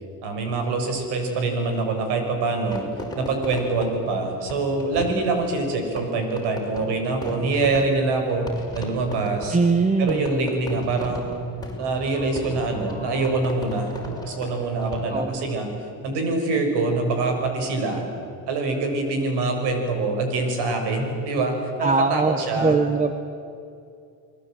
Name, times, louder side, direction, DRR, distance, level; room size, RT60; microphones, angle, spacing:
voice 1, 0.2-2.8 3.1-8.5 8.7-9.6 10.0-11.5 11.8-13.9 14.2-15.7 16.0-18.0 18.5-21.5 21.8-22.8, right 3 dB, 85° right, 5 dB, 6.3 m, -25 dB
Fireworks, 2.7-15.4, left 1 dB, 10° left, 6.3 m, -37 dB
voice 2, 9.5-10.2 15.1-15.4 21.8-23.1, right 4 dB, 20° right, 8 dB, 1.4 m, -21 dB
29.5 x 20.5 x 9.1 m, 2.5 s
cardioid pair, 115°, 40 cm